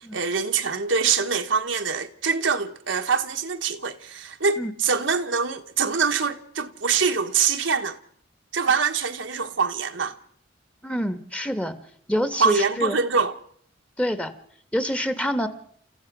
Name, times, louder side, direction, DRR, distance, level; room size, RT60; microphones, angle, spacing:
voice 1, 0.1-8.0 8.5-10.1 12.4-13.3, right 5 dB, 70° right, 1.3 m, -24 dB
voice 2, 10.8-11.7 12.1-13.0 14.0-14.3 14.7-15.5, equal, 5° left, 1.4 m, -26 dB
29.5 x 14.5 x 6.2 m
head